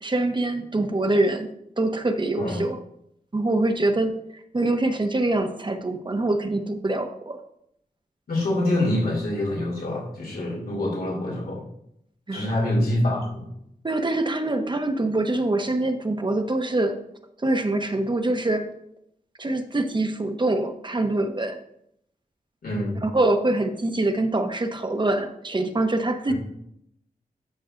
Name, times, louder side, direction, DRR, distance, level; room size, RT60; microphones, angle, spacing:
voice 1, 0.0-1.5 1.8-2.8 3.3-4.1 4.5-7.4 12.3-12.5 13.8-17.0 17.4-18.7 19.4-21.6 23.0-26.3, right 2 dB, 30° right, 6 dB, 0.8 m, -24 dB
voice 2, 8.3-11.6 12.3-13.5 22.6-23.0 26.3-26.4, left 1 dB, 90° left, -3 dB, 2.7 m, -25 dB
12.5 x 6.1 x 2.5 m, 0.76 s
wide cardioid pair, 80°, 15 cm